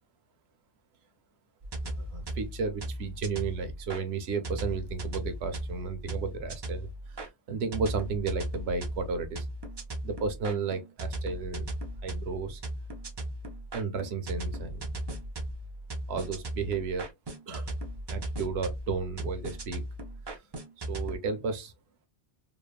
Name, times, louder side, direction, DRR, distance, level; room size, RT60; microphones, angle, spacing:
sound 1, 1.6-4.0 4.4-7.3 7.7-21.2, right 1 dB, 40° right, 0.3 m, -37 dB
voice 1, 1.8-9.5 10.0-11.6 12.0-12.6 13.7-14.9 16.1-17.1 17.5-17.7 18.1-19.8 20.8-21.7, right 5 dB, 75° right, 0.9 m, -33 dB
3.2 x 2.1 x 2.2 m
omnidirectional pair, 1.1 m